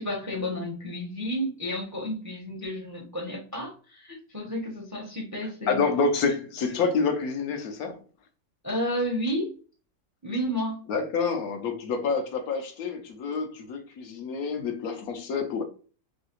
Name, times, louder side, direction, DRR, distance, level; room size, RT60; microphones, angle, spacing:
voice 1, 0.0-5.9 8.6-9.5 10.2-10.8, equal, 20° right, 0.5 m, -31 dB
voice 2, 5.4-8.0 10.9-15.6, left 4 dB, 70° left, 1.0 m, -28 dB
3.2 x 2.7 x 2.9 m
omnidirectional pair, 1.7 m